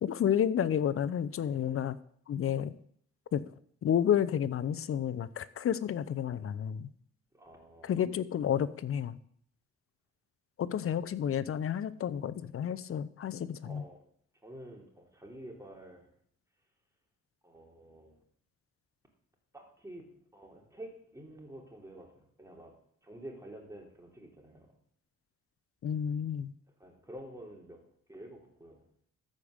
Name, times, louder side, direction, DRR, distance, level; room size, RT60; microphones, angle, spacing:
voice 1, 0.0-2.0 2.3-2.7 3.3-3.4 3.8-6.9 7.8-9.2 10.6-13.8 25.8-26.5, left 9 dB, 50° left, 16 dB, 0.7 m, -31 dB
voice 2, 7.3-8.0 10.8-11.0 13.6-14.0 14.4-16.1 17.4-18.2 19.5-22.7 23.0-24.7 26.8-27.8 28.1-28.8, right 1 dB, 10° right, 1 dB, 3.1 m, -49 dB
14.0 x 5.2 x 6.6 m, 0.65 s
cardioid pair, 90°, 30 cm